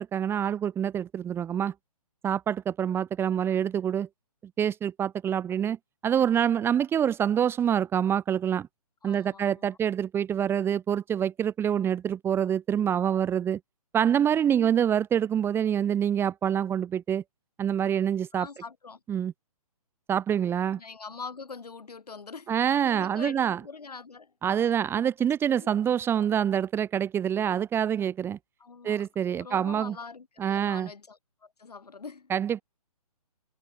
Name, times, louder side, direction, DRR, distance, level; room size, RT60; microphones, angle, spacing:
voice 1, 0.0-1.7 2.2-4.1 4.6-5.8 6.0-8.7 9.0-13.6 13.9-17.2 17.6-18.5 19.1-19.3 20.1-20.8 22.5-23.6 24.4-28.4 28.8-29.9 30.4-30.9 32.3-32.6, right 9 dB, 10° right, 1.1 m, -26 dB
voice 2, 9.0-9.8 18.3-19.0 20.8-22.5 22.8-24.3 25.5-25.7 28.6-29.1 29.4-32.3, left 4 dB, 80° left, 3.0 m, -43 dB
hypercardioid pair, 140°, 20 cm